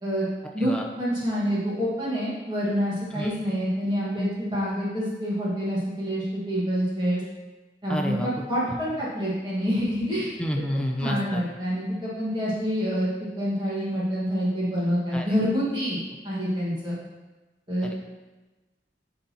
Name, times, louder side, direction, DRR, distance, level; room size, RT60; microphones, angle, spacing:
voice 1, 1.0-7.2 7.8-10.3 11.0-13.1 13.4-17.0 17.7-17.9, equal, 25° right, -8 dB, 1.6 m, -27 dB
voice 2, 7.9-8.3 10.4-11.4 15.1-15.3, equal, 5° left, 1 dB, 0.6 m, -29 dB
9.9 x 4.0 x 2.9 m, 1.2 s
head